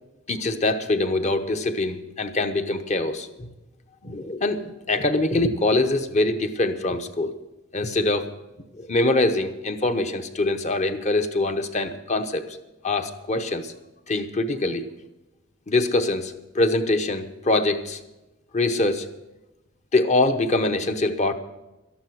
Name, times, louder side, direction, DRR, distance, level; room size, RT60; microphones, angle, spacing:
voice 1, 0.3-3.5 4.0-7.4 7.7-8.3 8.7-12.6 12.8-13.7 14.1-14.8 15.7-18.0 18.5-19.1 19.9-21.3, left 2 dB, 35° left, 8 dB, 0.9 m, -24 dB
13.0 x 11.5 x 6.4 m, 1.0 s
head